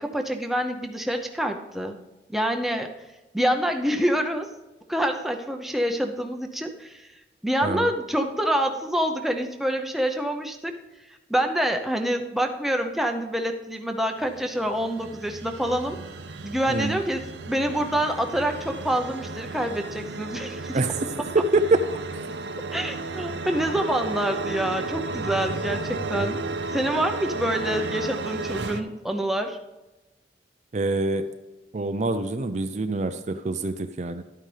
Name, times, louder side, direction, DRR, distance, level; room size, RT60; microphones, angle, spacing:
voice 1, 0.0-2.0 2.3-2.9 3.3-4.5 4.9-7.1 7.4-10.7 11.3-16.0 16.4-20.8 22.7-26.4 26.7-29.6, equal, ahead, 4 dB, 0.7 m, -26 dB
sound 1, 14.2-28.8, right 3 dB, 70° right, 0.7 m, -33 dB
voice 2, 30.7-31.2 31.7-34.2, right 3 dB, 40° right, 8 dB, 0.5 m, -26 dB
11.5 x 9.1 x 3.3 m, 1.1 s
head